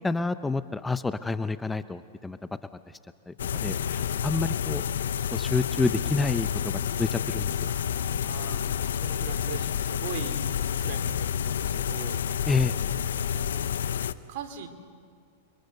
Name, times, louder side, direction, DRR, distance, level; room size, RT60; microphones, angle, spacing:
voice 1, 0.0-2.4 3.3-3.4 3.6-4.8 5.3-7.7 12.5-12.7, left 3 dB, 10° left, 12 dB, 0.6 m, -28 dB
sound 1, 3.4-14.1, left 9 dB, 85° left, 0.8 m, -29 dB
voice 2, 3.7-4.5 4.8-5.1 8.2-14.7, right 7 dB, 60° right, 7 dB, 3.0 m, -42 dB
28.5 x 24.5 x 6.7 m, 2.2 s
hypercardioid pair, 125°, 0 cm